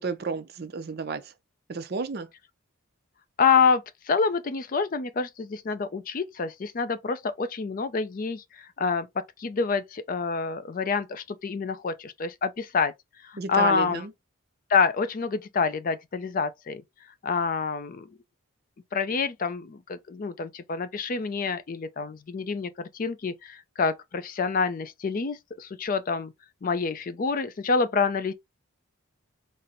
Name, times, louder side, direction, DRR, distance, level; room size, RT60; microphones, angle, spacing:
voice 1, 0.0-1.3 1.7-2.3 13.4-14.1, right 5 dB, 45° right, 0.5 m, -31 dB
voice 2, 3.4-12.9 13.2-14.0 14.7-16.8 17.2-18.1 18.9-26.3 26.6-28.3, left 5 dB, 40° left, 0.4 m, -27 dB
4.2 x 2.0 x 3.7 m
head